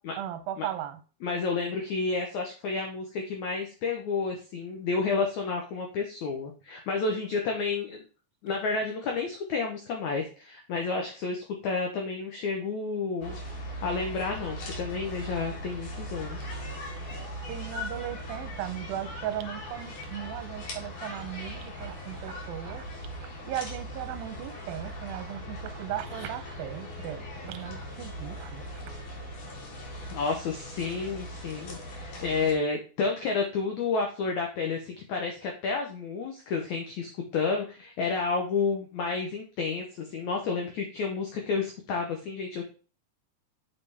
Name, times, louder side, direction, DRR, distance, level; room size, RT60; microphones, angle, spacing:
voice 1, 0.2-1.0 17.4-22.9 23.2-28.8, right 11 dB, 75° right, 9 dB, 2.3 m, -37 dB
voice 2, 1.2-8.0 8.4-13.4 13.8-16.5 30.1-42.6, left 4 dB, 80° left, 2 dB, 1.7 m, -30 dB
sound 1, 13.2-32.5, equal, 60° left, 3.1 m, -39 dB
6.8 x 5.5 x 3.4 m, 0.37 s
omnidirectional pair, 4.5 m